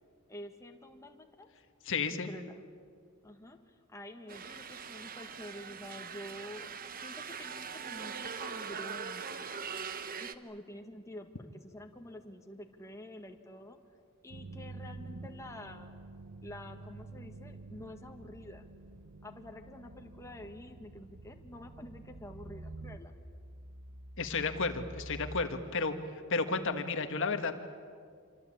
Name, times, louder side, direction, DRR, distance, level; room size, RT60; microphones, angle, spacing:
voice 1, 0.3-1.5 2.1-2.6 3.2-6.7 7.0-9.5 10.2-13.8 14.2-15.9 16.4-18.7 19.2-23.1, left 1 dB, 15° left, 3 dB, 1.8 m, -48 dB
voice 2, 1.9-2.3 24.2-26.0 26.3-27.5, left 4 dB, 60° left, 7 dB, 1.6 m, -32 dB
sound 1, 4.3-10.3, right 6 dB, 40° right, 1.1 m, -42 dB
sound 2, 14.3-25.4, right 2 dB, 85° right, 1.3 m, -48 dB
27.5 x 25.0 x 8.8 m, 2.1 s
head